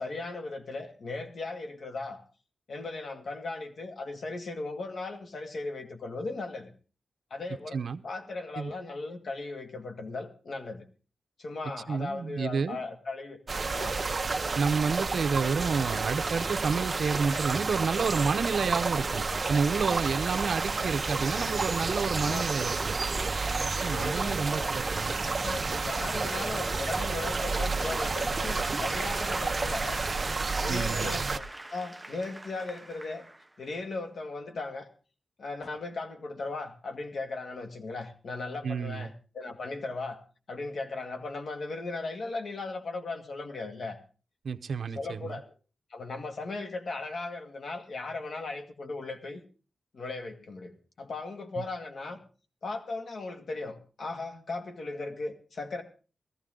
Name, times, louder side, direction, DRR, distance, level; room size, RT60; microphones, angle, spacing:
voice 1, 0.0-2.2 2.7-6.7 7.3-10.8 11.4-13.4 13.7-14.0 22.2-22.4 23.8-24.7 25.2-30.0 30.6-33.2 33.6-34.9 35.4-40.2 40.5-44.0 45.0-45.5 45.9-49.4 49.9-52.2 52.6-55.8, left 3 dB, 75° left, 2.0 m, -37 dB
voice 2, 11.9-12.8 14.5-23.0 23.7-25.3 30.7-31.2 38.6-39.1 44.4-45.4 51.6-51.7, right 5 dB, 85° right, 0.7 m, -30 dB
sound 1, 13.5-31.4, right 4 dB, 40° right, 0.8 m, -30 dB
Applause / Crowd, 27.4-33.8, right 1 dB, 10° right, 0.7 m, -42 dB
17.5 x 14.0 x 3.8 m
wide cardioid pair, 115°, 0 cm